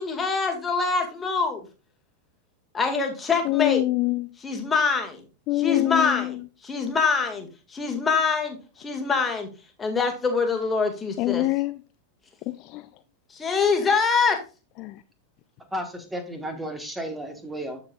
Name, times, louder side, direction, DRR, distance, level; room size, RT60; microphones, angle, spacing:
voice 1, 0.0-1.6 2.7-3.8 4.4-5.2 5.6-6.4 6.6-7.5 7.7-9.5 9.8-11.4 13.4-14.4, left 5 dB, 15° left, 3 dB, 2.0 m, -24 dB
voice 2, 3.4-4.3 5.5-6.5 11.2-11.8 12.5-12.9 13.8-13.9 14.8-15.0, left 19 dB, 40° left, 11 dB, 0.4 m, -25 dB
voice 3, 15.7-17.8, equal, 5° right, 7 dB, 1.5 m, -33 dB
13.5 x 4.9 x 2.4 m, 0.33 s
figure-of-eight pair, 90°, 0 cm